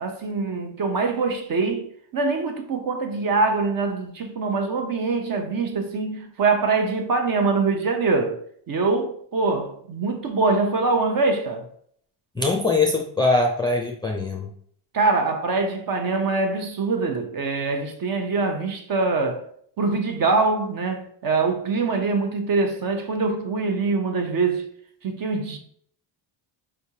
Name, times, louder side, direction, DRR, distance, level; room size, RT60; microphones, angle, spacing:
voice 1, 0.0-1.9 2.1-8.4 8.7-11.7 14.9-19.5 19.8-24.7 25.0-25.6, right 3 dB, 45° right, 0.8 m, -24 dB
voice 2, 12.4-14.5, left 3 dB, 10° left, 0.5 m, -22 dB
4.8 x 3.3 x 2.8 m
cardioid pair, 105°, 49 cm